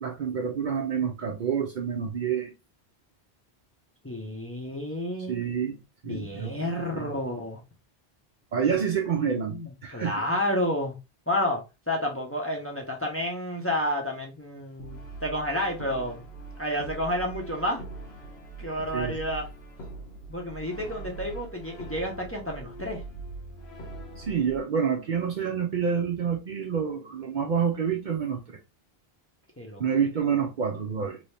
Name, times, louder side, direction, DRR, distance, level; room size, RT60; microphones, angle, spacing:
voice 1, 0.0-2.5 5.3-7.1 8.5-10.1 18.9-19.1 24.2-28.6 29.8-31.2, right 7 dB, 55° right, 0.6 m, -28 dB
voice 2, 4.0-5.4 6.0-7.6 8.6-8.8 9.5-10.9 11.3-11.6 11.9-16.2 16.6-17.8 18.6-19.5 20.3-23.0 29.6-29.8, left 1 dB, 15° left, 0.7 m, -30 dB
Brass instrument, 14.8-24.6, right 2 dB, 85° left, 1.2 m, -42 dB
3.1 x 2.7 x 3.2 m
omnidirectional pair, 1.1 m